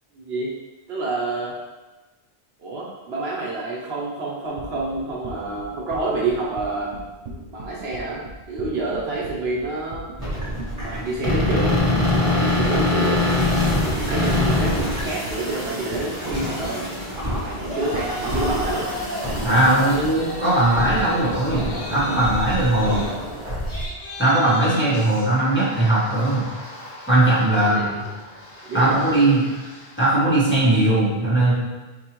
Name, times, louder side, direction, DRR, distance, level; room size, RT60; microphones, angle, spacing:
voice 1, 0.1-0.5 0.9-1.5 2.6-6.9 7.5-10.0 10.8-13.5 13.8-16.9 17.4-18.9 22.8-23.1 27.5-28.1 28.6-29.0, right 2 dB, 70° right, -4 dB, 1.0 m, -28 dB
sound 1, 4.5-22.5, right 2 dB, 55° right, 0.6 m, -39 dB
sound 2, 10.2-23.9, left 2 dB, 30° right, 1.1 m, -25 dB
Yell, 17.6-19.3 19.6-30.1, equal, 40° left, 0.9 m, -36 dB
voice 2, 19.4-23.0 24.2-26.5 27.1-28.0 28.7-29.4 30.0-31.5, right 1 dB, 10° left, -10 dB, 1.2 m, -19 dB
4.8 x 2.6 x 2.9 m, 1.2 s
omnidirectional pair, 1.1 m